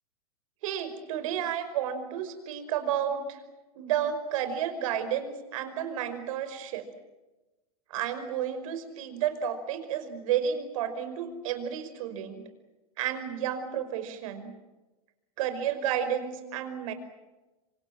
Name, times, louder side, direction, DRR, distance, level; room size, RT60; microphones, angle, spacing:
voice 1, 0.6-3.4 3.8-6.9 7.9-12.4 13.0-14.5 15.4-16.9, right 9 dB, 60° right, 9 dB, 5.3 m, -31 dB
27.0 x 26.5 x 7.4 m, 1.1 s
hypercardioid pair, 110°, 19 cm